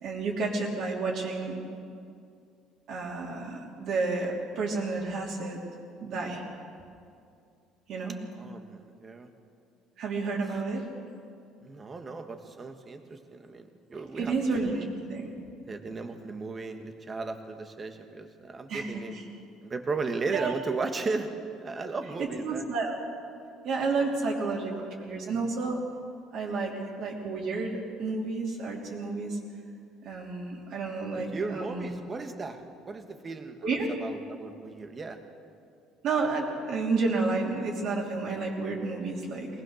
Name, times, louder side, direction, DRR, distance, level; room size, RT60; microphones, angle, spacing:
voice 1, 0.0-1.6 2.9-5.6 6.0-6.4 7.9-8.2 10.0-10.9 14.1-14.7 15.1-15.3 18.7-19.2 20.3-20.5 22.2-23.0 23.6-25.8 26.3-29.4 30.0-32.0 33.6-33.9 36.0-39.5, right 3 dB, 55° right, -2 dB, 3.2 m, -31 dB
voice 2, 8.3-9.3 10.2-10.4 11.6-14.3 14.6-14.9 15.7-19.2 19.6-21.3 21.6-22.7 31.3-33.6 34.0-35.2, right 3 dB, 25° right, 6 dB, 1.6 m, -35 dB
21.5 x 19.5 x 6.5 m, 2.4 s
cardioid pair, 140°, 0 cm